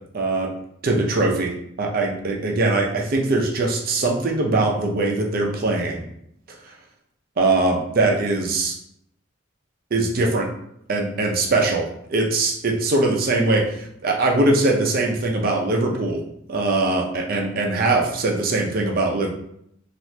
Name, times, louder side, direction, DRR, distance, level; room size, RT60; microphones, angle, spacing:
voice 1, 0.1-0.5 0.8-1.5 1.8-6.0 6.7-6.8 7.4-8.7 9.9-10.5 10.9-11.8 12.1-16.2 16.5-19.3, right 2 dB, 45° right, 0 dB, 0.5 m, -21 dB
2.7 x 2.4 x 3.2 m, 0.73 s
head